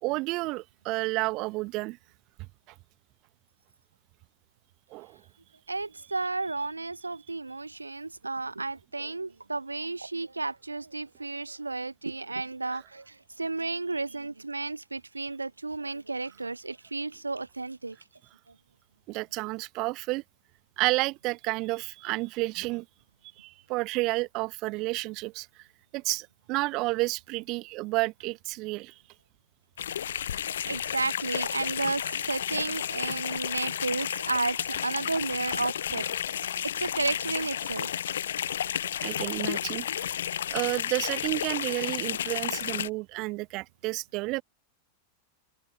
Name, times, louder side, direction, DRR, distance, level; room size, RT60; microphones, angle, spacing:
voice 1, 0.0-2.0 4.9-5.2 19.1-20.2 20.8-22.8 23.4-25.5 25.9-28.9 39.0-40.2 40.5-44.4, right 23 dB, 40° right, 1.2 m, -31 dB
voice 2, 5.7-18.0 30.3-36.0 36.3-36.5 36.8-37.9, right 3 dB, 80° right, 0.6 m, -33 dB
sound 1, 29.8-42.9, left 9 dB, 65° left, 0.5 m, -32 dB
open air
figure-of-eight pair, 90°, 0 cm